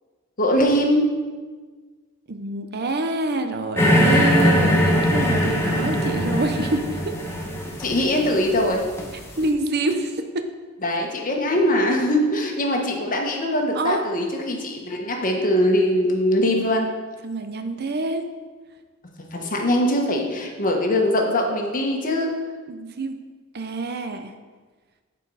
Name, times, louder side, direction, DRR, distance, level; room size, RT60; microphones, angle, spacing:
voice 1, 0.4-1.1 7.8-8.8 10.8-16.9 19.3-22.3, left 1 dB, 40° left, 1 dB, 1.3 m, -22 dB
voice 2, 2.3-7.1 9.4-10.5 13.7-14.0 17.2-18.2 22.7-23.1 23.5-24.3, right 2 dB, 50° right, 7 dB, 0.6 m, -26 dB
sound 1, 3.8-9.4, equal, 10° left, 1.1 m, -21 dB
12.0 x 4.6 x 4.8 m, 1.4 s
head